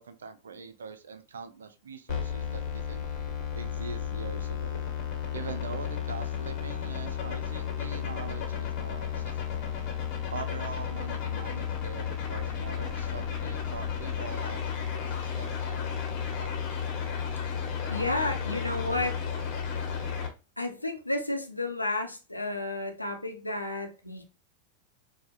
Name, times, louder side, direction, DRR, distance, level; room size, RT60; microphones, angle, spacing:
voice 1, 0.0-3.1 3.6-4.9 5.3-9.7 10.3-16.7, right 5 dB, 70° right, 10 dB, 0.4 m, -43 dB
sound 1, 2.1-20.3, left 8 dB, 40° left, 0.9 m, -33 dB
voice 2, 17.9-19.2 20.6-24.2, left 2 dB, 85° left, 4 dB, 0.6 m, -32 dB
4.6 x 2.0 x 2.5 m, 0.30 s
figure-of-eight pair, 90°, 0 cm